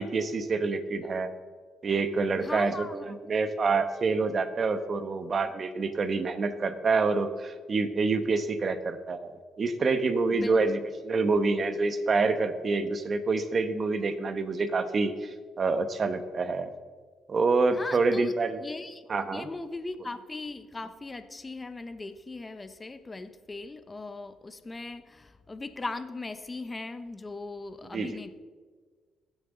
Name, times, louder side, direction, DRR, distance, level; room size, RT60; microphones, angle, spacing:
voice 1, 0.0-1.3 1.8-16.7 17.3-18.6 19.1-19.5 27.9-28.2, right 4 dB, 45° right, 10 dB, 1.1 m, -27 dB
voice 2, 2.4-3.1 10.3-10.6 17.7-18.3 18.6-19.0 19.3-28.3, left 3 dB, 25° left, 10 dB, 0.9 m, -39 dB
21.5 x 7.3 x 3.9 m, 1.5 s
cardioid pair, 90°, 0 cm